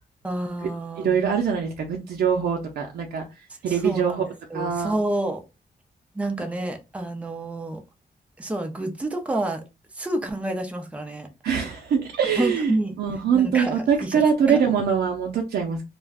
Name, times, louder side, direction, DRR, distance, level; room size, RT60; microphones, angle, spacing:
voice 1, 0.2-1.2 3.7-4.2 4.5-5.4 6.1-7.8 8.4-9.6 9.9-11.3 12.4-12.9 13.3-14.2 14.5-14.6, right 1 dB, 10° right, 0.4 m, -28 dB
voice 2, 1.0-3.2 3.6-4.2 4.5-4.9 11.4-15.9, right 7 dB, 90° right, 0.5 m, -23 dB
2.4 x 2.1 x 3.4 m
wide cardioid pair, 150°, 16 cm